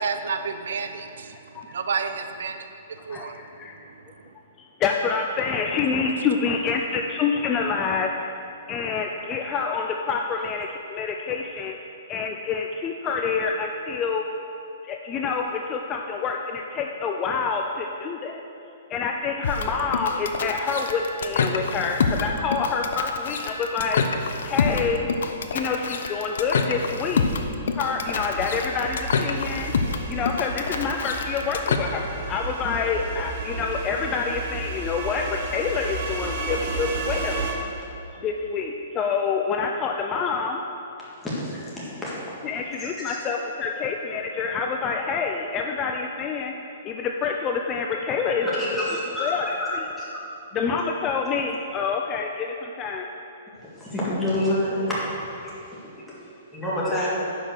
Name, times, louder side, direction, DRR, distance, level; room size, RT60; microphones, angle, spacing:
voice 1, 0.0-1.3 1.7-2.6 3.1-3.3, right 5 dB, 80° right, 8 dB, 0.6 m, -29 dB
voice 2, 1.3-1.7 3.1-3.8 4.8-8.1 8.7-11.8 12.1-14.2 14.8-18.4 18.9-24.1 24.4-25.1 25.5-27.2 27.7-29.7 30.1-37.5 38.2-40.6 42.4-46.5 46.8-49.5 49.7-49.9 50.5-53.1, left 5 dB, 20° left, 2 dB, 0.4 m, -27 dB
sound 1, 19.4-31.8, left 5 dB, 70° left, 0.7 m, -27 dB
sound 2, 28.0-37.5, right 3 dB, 45° right, 1.3 m, -33 dB
voice 3, 41.2-42.2 42.8-43.2 48.4-49.7 50.0-50.2 53.8-55.0 55.4-55.8 56.5-57.1, left 1 dB, 5° left, -9 dB, 2.0 m, -28 dB
10.0 x 5.8 x 6.3 m, 2.9 s
hypercardioid pair, 170°, 0 cm